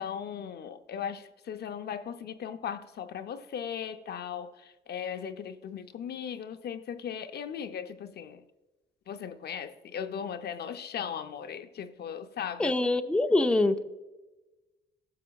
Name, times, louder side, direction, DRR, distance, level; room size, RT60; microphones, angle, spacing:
voice 1, 0.0-8.4 9.1-12.7, left 8 dB, 55° left, 9 dB, 0.6 m, -37 dB
voice 2, 12.6-13.8, left 2 dB, 5° left, 6 dB, 0.5 m, -24 dB
13.0 x 6.7 x 2.3 m, 1.1 s
cardioid pair, 90°, 20 cm